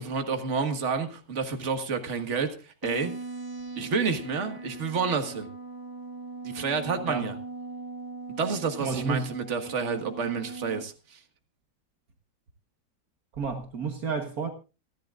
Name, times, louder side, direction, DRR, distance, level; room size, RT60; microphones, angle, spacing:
voice 1, 0.0-2.5 2.8-3.1 3.8-5.5 6.4-7.3 8.4-11.2, right 5 dB, 45° right, 1.9 m, -29 dB
sound 1, 2.8-10.8, right 3 dB, 15° right, 1.1 m, -40 dB
voice 2, 8.8-9.3 13.4-14.5, right 5 dB, 60° right, 1.8 m, -30 dB
28.0 x 11.0 x 2.5 m
omnidirectional pair, 1.9 m